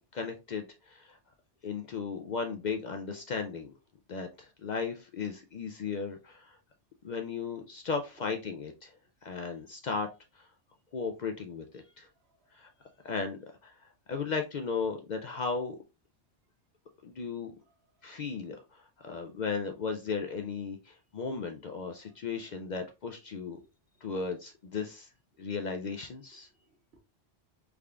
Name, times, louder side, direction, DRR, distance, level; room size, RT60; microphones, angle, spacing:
voice 1, 0.1-1.2 1.6-3.7 4.1-6.6 7.0-8.9 9.2-10.1 10.3-10.5 10.9-12.1 12.5-12.7 13.0-13.8 14.1-15.8 17.0-17.5 18.0-23.6 24.0-25.1 25.4-26.5, left 5 dB, 65° left, 0.4 m, -36 dB
voice 2, 12.2-12.7 17.6-18.2 21.9-22.2 23.4-23.7 26.3-27.0, right 1 dB, 60° right, 1.1 m, -68 dB
3.6 x 3.3 x 2.4 m
omnidirectional pair, 1.2 m